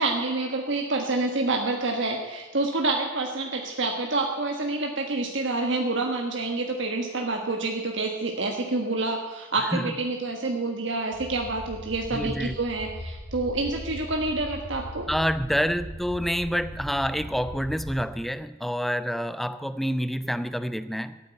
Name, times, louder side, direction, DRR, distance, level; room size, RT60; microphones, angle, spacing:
voice 1, 0.0-15.1, right 2 dB, 65° right, 1.3 m, -28 dB
sound 1, 11.1-18.1, equal, 65° left, 3.5 m, -39 dB
voice 2, 12.1-12.6 15.1-21.2, equal, ahead, 0.4 m, -28 dB
13.0 x 9.2 x 8.8 m
head